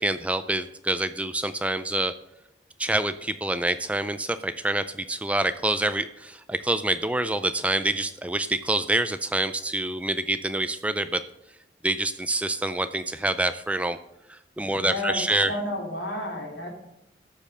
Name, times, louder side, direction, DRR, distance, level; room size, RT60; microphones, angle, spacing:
voice 1, 0.0-2.1 2.8-11.2 11.8-14.0 14.3-15.5, right 2 dB, 5° right, 12 dB, 0.3 m, -26 dB
voice 2, 14.6-16.7, left 1 dB, 75° left, 0 dB, 3.1 m, -32 dB
13.5 x 5.3 x 6.6 m, 0.87 s
head